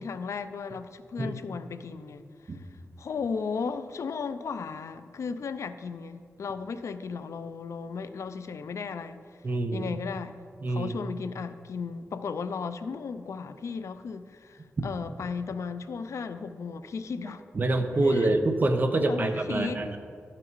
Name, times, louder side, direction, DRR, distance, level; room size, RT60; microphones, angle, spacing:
voice 1, 0.0-2.7 3.0-9.2 9.7-10.4 10.7-17.4 18.0-18.3 19.0-20.0, left 5 dB, 80° left, 11 dB, 0.5 m, -35 dB
voice 2, 9.4-9.9 10.6-10.9 17.5-20.0, right 2 dB, 40° right, 6 dB, 0.8 m, -26 dB
12.0 x 5.8 x 4.6 m, 2.1 s
wide cardioid pair, 160°, 5 cm